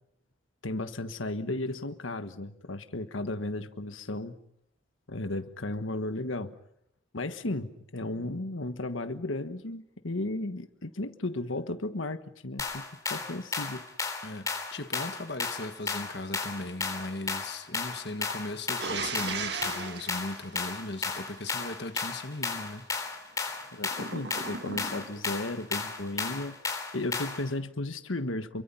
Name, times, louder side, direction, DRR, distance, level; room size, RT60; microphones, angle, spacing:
voice 1, 0.6-4.4 5.1-6.6 7.1-13.9 23.7-26.6 26.9-28.6, left 2 dB, 90° left, 1.4 m, -34 dB
sound 1, 12.6-27.5, left 4 dB, 15° left, 3.2 m, -34 dB
voice 2, 14.2-22.9, left 2 dB, 60° left, 1.5 m, -38 dB
sound 2, 18.8-21.5 23.9-25.3, right 4 dB, 55° right, 1.7 m, -37 dB
29.0 x 23.5 x 5.6 m
head